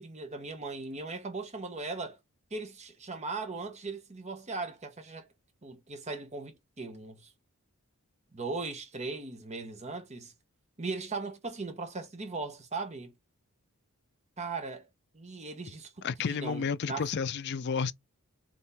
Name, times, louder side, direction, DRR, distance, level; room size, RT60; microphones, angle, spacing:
voice 1, 0.0-2.2 2.5-5.3 5.6-7.3 8.3-10.3 10.8-13.1 14.4-14.9 15.1-17.0, right 3 dB, 30° right, 1.0 m, -38 dB
voice 2, 16.0-17.9, left 6 dB, 50° left, 0.4 m, -31 dB
3.7 x 3.0 x 4.0 m
head